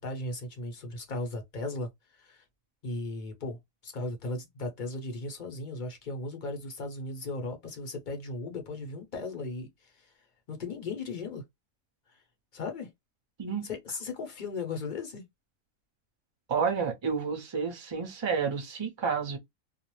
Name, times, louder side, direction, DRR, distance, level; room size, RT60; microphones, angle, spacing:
voice 1, 0.0-2.4 2.8-10.1 10.5-11.4 12.1-12.2 12.5-12.9 13.6-15.2, left 2 dB, 45° left, 0.7 m, -37 dB
voice 2, 16.5-19.4, right 6 dB, 30° right, 0.5 m, -30 dB
2.4 x 2.0 x 3.0 m
omnidirectional pair, 1.4 m